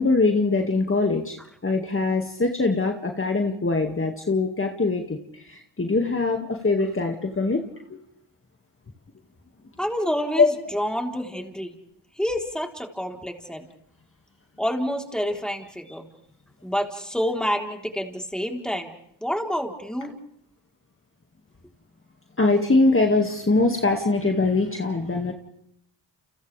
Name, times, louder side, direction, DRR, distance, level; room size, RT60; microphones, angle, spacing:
voice 1, 0.0-7.6 7.9-8.0 10.4-10.6 22.4-25.3, left 3 dB, 25° left, 3 dB, 2.2 m, -22 dB
voice 2, 9.8-11.7 12.2-13.6 14.6-16.1 16.6-18.9 19.2-20.1, equal, ahead, 2 dB, 3.9 m, -28 dB
29.5 x 29.5 x 3.5 m, 0.71 s
supercardioid pair, 50°, 46 cm